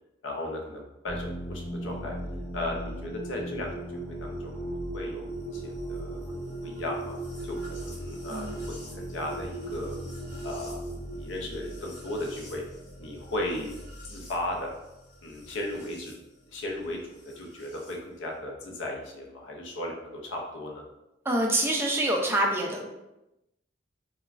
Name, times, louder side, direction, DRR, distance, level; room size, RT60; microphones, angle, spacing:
voice 1, 0.2-2.2 2.5-10.0 10.4-12.6 13.0-13.8 14.0-14.7 15.2-16.2 16.5-20.9, left 1 dB, 70° left, 0 dB, 0.5 m, -36 dB
sound 1, 1.1-16.1 17.3-17.9, right 1 dB, 40° left, 1.5 m, -38 dB
voice 2, 21.3-22.9, right 1 dB, 10° right, 0 dB, 0.3 m, -26 dB
3.0 x 2.2 x 2.4 m, 0.92 s
head